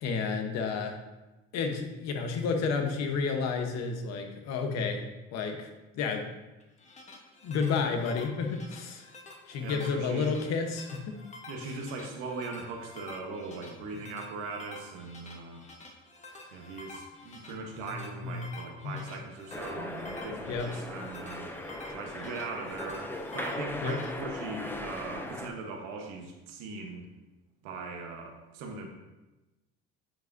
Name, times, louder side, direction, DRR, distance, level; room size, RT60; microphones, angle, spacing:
voice 1, 0.0-0.9 1.5-5.0 5.3-5.7 6.0-6.2 7.4-9.0 9.5-11.2 18.2-18.4 18.8-18.9 19.8-20.2 20.5-20.7 23.8-24.0, left 5 dB, 60° left, 4 dB, 1.1 m, -31 dB
sound 1, 6.6-24.1, left 3 dB, 25° left, 1.1 m, -49 dB
voice 2, 9.6-10.3 11.5-15.6 16.5-21.5 21.9-27.1 27.6-28.9, right 3 dB, 90° right, 2 dB, 1.2 m, -40 dB
sound 2, 19.5-25.5, left 1 dB, 5° left, 0.5 m, -39 dB
9.0 x 4.9 x 2.7 m, 1.1 s
cardioid pair, 115°, 29 cm